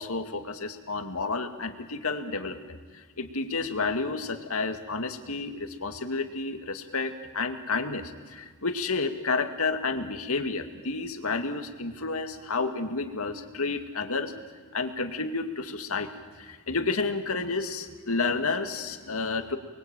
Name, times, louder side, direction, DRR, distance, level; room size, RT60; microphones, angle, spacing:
voice 1, 0.0-14.3 14.7-16.1 16.4-19.6, left 3 dB, 85° left, 6 dB, 2.2 m, -30 dB
29.5 x 22.0 x 9.1 m, 1.4 s
head